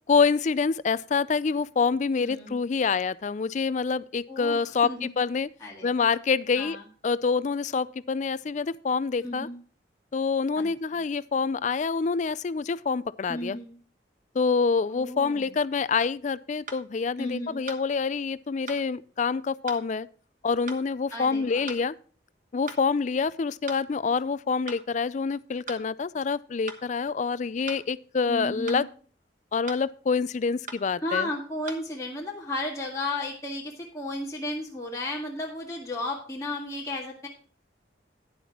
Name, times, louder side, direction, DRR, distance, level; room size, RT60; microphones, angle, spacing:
voice 1, 0.1-5.5 5.8-6.8 7.0-9.5 10.1-13.6 14.3-20.1 20.4-22.0 22.5-28.9 29.5-31.3, left 5 dB, 40° left, 0.4 m, -26 dB
voice 2, 2.2-2.5 4.3-5.1 5.6-5.9 6.5-6.8 9.2-9.6 10.6-10.7 13.3-13.7 14.9-15.5 17.2-17.6 21.1-21.6 28.3-28.9 31.0-37.3, left 2 dB, 15° left, 1.9 m, -34 dB
sound 1, 16.7-16.8 17.7-17.8 18.7-18.8 19.7-19.8 20.7-20.8 21.7-21.8 22.7-22.8 23.7-23.8 24.7-24.8 25.7-25.8 26.7-26.8 27.7-27.8 28.7-28.8 29.7-29.8 30.7-30.8 31.7-31.8, right 4 dB, 45° right, 1.3 m, -39 dB
11.0 x 10.0 x 2.9 m
head